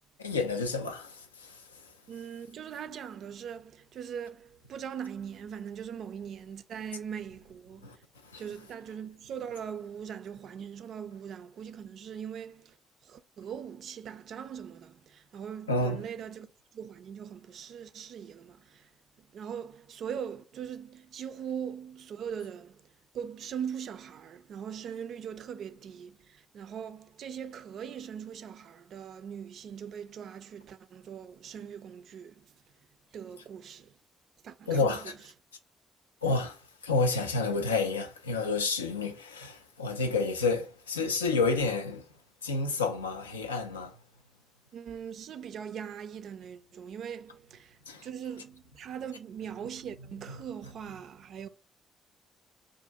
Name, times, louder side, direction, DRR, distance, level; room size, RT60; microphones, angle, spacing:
voice 1, 0.2-1.6 7.8-8.0 8.3-8.4 15.7-16.0 34.7-35.1 36.2-36.6 36.8-42.0 42.4-43.9 47.9-48.1, left 3 dB, 90° left, 0.3 m, -29 dB
voice 2, 2.1-8.0 8.4-12.8 13.0-16.5 16.7-18.9 19.2-22.9 23.1-32.5 33.1-34.0 34.4-35.2 44.7-51.5, right 8 dB, 60° right, 0.3 m, -41 dB
2.4 x 2.4 x 3.9 m
figure-of-eight pair, 45°, 0 cm